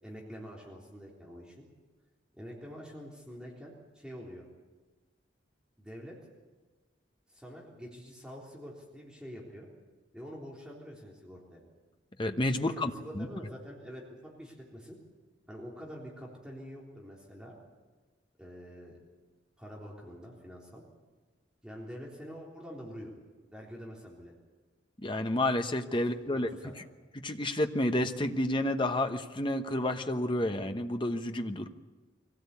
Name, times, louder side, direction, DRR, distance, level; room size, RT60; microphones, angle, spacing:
voice 1, 0.0-1.7 2.3-4.5 5.8-6.2 7.3-9.7 10.1-11.6 12.6-15.0 15.5-17.6 18.4-19.0 19.6-20.8 21.6-23.1 23.5-24.3 25.9-26.7, equal, 5° right, -4 dB, 3.7 m, -46 dB
voice 2, 12.2-12.9 13.2-13.3 25.0-26.5 27.2-31.7, left 1 dB, 25° left, 7 dB, 1.0 m, -30 dB
23.5 x 17.0 x 8.4 m, 1.3 s
head